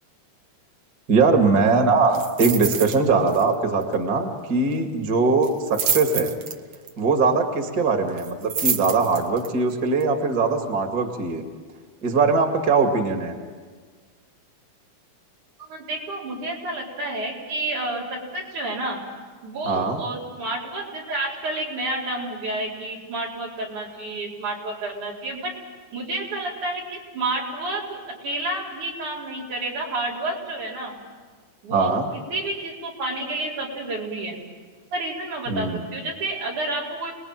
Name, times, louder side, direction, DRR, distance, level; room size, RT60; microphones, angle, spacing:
voice 1, 1.1-6.3 7.0-11.4 12.0-13.3 19.7-20.0 31.7-32.1 35.5-35.9, right 4 dB, 35° right, 4 dB, 2.5 m, -21 dB
sound 1, 2.1-3.0 3.3-3.5 3.8-3.9 5.4-6.9 8.2-9.5 10.0-10.1, right 7 dB, 55° right, 1.7 m, -27 dB
voice 2, 15.6-19.0 19.4-25.5 25.9-30.9 31.6-31.9 32.3-34.4 34.9-37.1, right 2 dB, 85° right, -3 dB, 6.1 m, -30 dB
29.0 x 20.5 x 9.0 m, 1.5 s
omnidirectional pair, 3.4 m